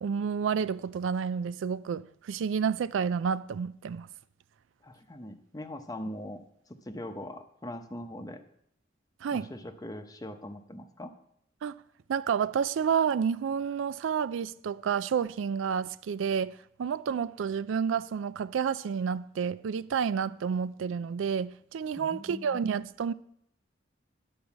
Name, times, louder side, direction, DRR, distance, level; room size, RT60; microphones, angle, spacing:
voice 1, 0.0-4.1 9.2-9.5 11.6-11.8 12.1-23.1, right 7 dB, 80° right, 0.3 m, -30 dB
voice 2, 4.8-6.4 6.8-8.4 9.3-11.1 22.0-22.6, left 1 dB, 20° left, 0.8 m, -41 dB
10.5 x 4.7 x 7.1 m
head